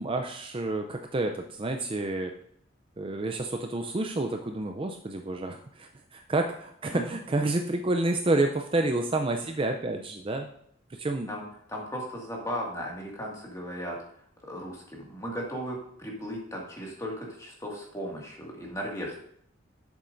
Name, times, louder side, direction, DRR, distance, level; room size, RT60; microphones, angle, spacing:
voice 1, 0.0-2.3 3.0-10.5 10.9-11.3, right 2 dB, 25° right, 5 dB, 0.5 m, -29 dB
voice 2, 11.3-14.0 14.4-19.2, equal, 15° left, -2 dB, 2.0 m, -36 dB
10.5 x 7.5 x 2.6 m, 0.68 s
head